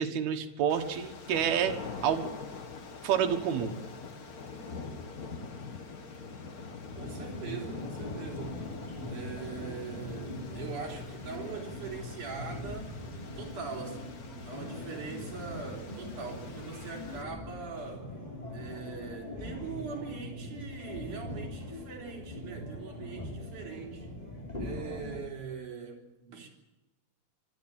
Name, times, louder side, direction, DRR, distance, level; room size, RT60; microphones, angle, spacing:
voice 1, 0.0-2.3 3.0-3.7, right 8 dB, 85° right, 5 dB, 3.4 m, -29 dB
sound 1, 0.7-17.2, left 4 dB, 70° left, 0.8 m, -44 dB
sound 2, 6.9-25.2, left 1 dB, 10° left, 4.8 m, -41 dB
voice 2, 7.0-8.6 9.1-13.0 13.3-14.2 14.4-18.1 18.5-24.2 24.6-26.5, right 5 dB, 55° right, 1 dB, 5.0 m, -42 dB
24.5 x 12.5 x 8.8 m, 1.1 s
omnidirectional pair, 4.3 m